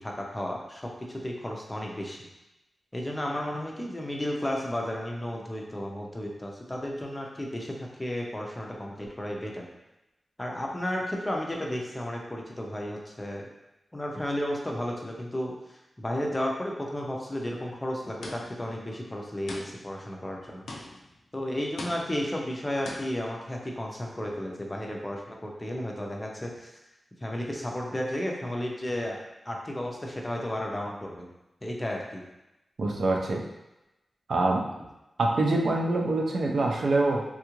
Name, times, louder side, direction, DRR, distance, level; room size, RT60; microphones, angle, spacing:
voice 1, 0.0-2.2 2.9-7.7 8.0-9.6 10.4-13.5 13.9-20.7 21.3-26.7 27.2-29.2 29.5-31.3 31.6-32.2, left 1 dB, 15° left, -1 dB, 0.5 m, -33 dB
sound 1, 18.2-18.7 19.5-20.0 20.7-21.2 21.8-22.3 22.8-23.3, left 2 dB, 80° left, 0.4 m, -41 dB
voice 2, 32.8-33.4 34.3-34.7 35.2-37.2, right 2 dB, 65° right, 0 dB, 0.5 m, -25 dB
3.5 x 2.4 x 2.9 m, 0.95 s
wide cardioid pair, 165°, 0 cm